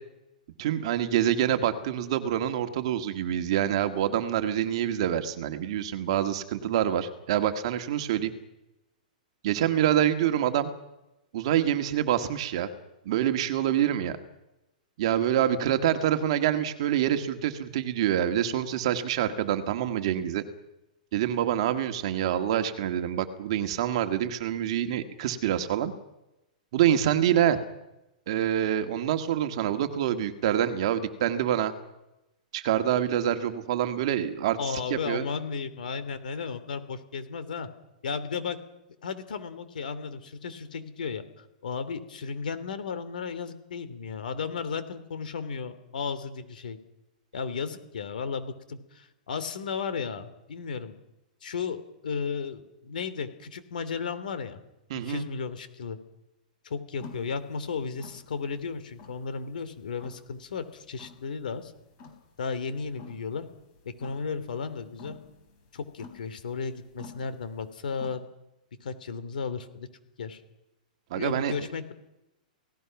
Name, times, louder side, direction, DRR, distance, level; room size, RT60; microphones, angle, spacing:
voice 1, 0.6-8.3 9.4-10.7 11.3-12.7 13.1-14.2 15.0-20.4 21.1-25.9 26.7-27.6 28.3-31.7 32.5-35.3 54.9-55.3 71.1-71.5, right 10 dB, 40° right, 8 dB, 1.8 m, -26 dB
voice 2, 34.6-37.7 38.0-38.6 39.0-46.8 47.3-50.9 51.4-54.6 55.1-56.0 56.6-61.7 62.4-63.4 64.0-65.1 65.7-68.2 68.8-69.9 70.2-70.4 71.1-71.9, left 5 dB, 75° left, 12 dB, 3.0 m, -34 dB
sound 1, 57.0-68.2, left 4 dB, 30° left, 3.9 m, -51 dB
29.0 x 18.0 x 6.0 m, 0.93 s
hypercardioid pair, 175°, 5 cm